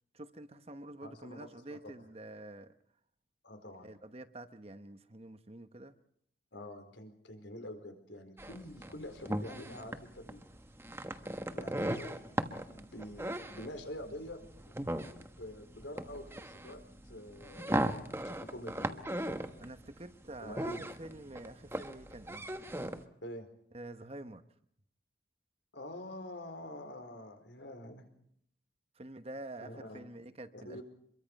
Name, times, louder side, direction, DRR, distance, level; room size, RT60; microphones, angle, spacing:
voice 1, 0.1-2.7 3.8-5.9 19.6-22.5 23.7-24.4 28.9-30.8, right 1 dB, 30° right, 1.1 m, -47 dB
voice 2, 1.0-1.9 3.4-3.9 6.5-10.5 11.5-14.7 15.4-19.1 20.4-20.8 23.2-23.5 25.7-28.1 29.6-30.0 30.5-30.8, left 1 dB, 75° left, 4.5 m, -46 dB
sound 1, 8.4-23.0, right 1 dB, 15° right, 1.2 m, -38 dB
26.0 x 22.5 x 5.4 m
head